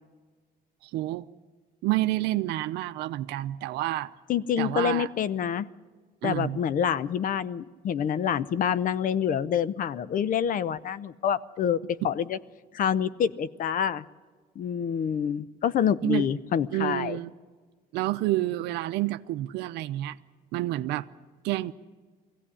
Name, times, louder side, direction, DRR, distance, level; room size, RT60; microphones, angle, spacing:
voice 1, 0.8-1.3 1.8-4.1 4.6-5.1 6.2-6.6 16.0-16.3 16.7-17.3 17.9-20.2 20.5-21.1 21.4-21.7, right 16 dB, 90° right, 11 dB, 0.6 m, -29 dB
voice 2, 4.3-5.7 6.2-12.4 12.7-14.0 14.6-17.2, left 8 dB, 55° left, 17 dB, 0.8 m, -27 dB
21.5 x 16.0 x 9.9 m, 1.4 s
cardioid pair, 110°, 17 cm